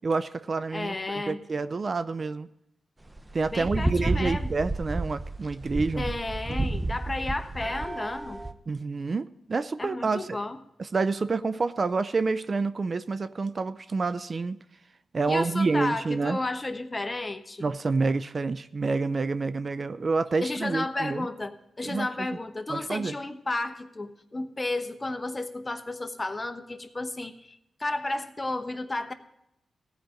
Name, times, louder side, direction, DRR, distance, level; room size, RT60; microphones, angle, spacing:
voice 1, 0.0-2.5 3.3-6.1 8.7-10.4 10.9-14.6 15.1-16.4 17.6-21.3 21.8-22.3 22.7-23.1, right 4 dB, 50° right, 14 dB, 0.4 m, -28 dB
voice 2, 0.7-1.4 3.5-4.5 6.0-8.4 9.8-10.6 15.3-17.7 20.4-29.1, left 2 dB, 30° left, 9 dB, 1.0 m, -32 dB
sound 1, 3.1-8.5, right 2 dB, 20° right, 0.8 m, -31 dB
15.0 x 5.1 x 7.5 m, 0.82 s
supercardioid pair, 50°, 0 cm